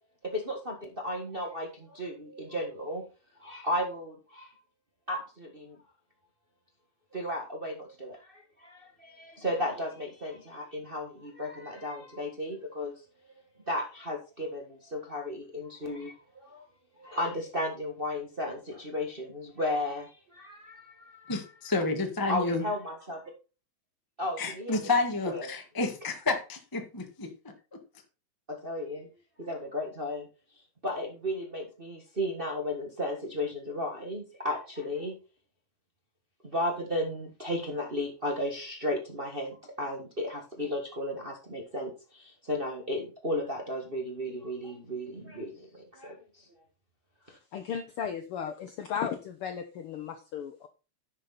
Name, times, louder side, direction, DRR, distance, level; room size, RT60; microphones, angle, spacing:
voice 1, 0.2-3.0 3.4-4.5 5.1-5.8 7.1-12.9 13.6-16.6 17.0-21.3 22.3-23.2 24.2-24.8 25.2-25.5 28.5-29.1 29.4-30.3 30.8-35.1 36.4-46.4 47.3-47.4, left 1 dB, 30° right, 1 dB, 1.1 m, -34 dB
voice 2, 21.3-22.6 24.4-27.3 27.7-27.8, left 3 dB, 15° left, 4 dB, 0.6 m, -30 dB
voice 3, 47.5-50.7, left 7 dB, 75° left, 8 dB, 1.3 m, -35 dB
10.5 x 6.4 x 4.1 m, 0.32 s
omnidirectional pair, 3.4 m